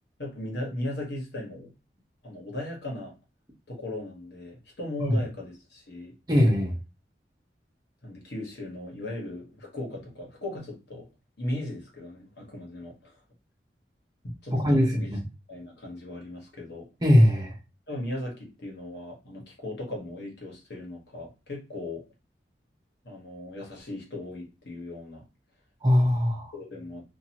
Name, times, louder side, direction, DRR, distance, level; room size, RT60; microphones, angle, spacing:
voice 1, 0.2-1.7 2.2-3.1 3.7-6.1 8.0-11.1 11.4-13.1 14.2-15.1 15.5-16.9 17.9-22.0 23.0-25.2 26.5-27.0, left 1 dB, 75° left, -1 dB, 1.2 m, -37 dB
voice 2, 6.3-6.8 14.5-15.2 17.0-17.5 25.8-26.5, left 1 dB, 20° right, -1 dB, 0.8 m, -21 dB
2.7 x 2.6 x 2.8 m, 0.28 s
head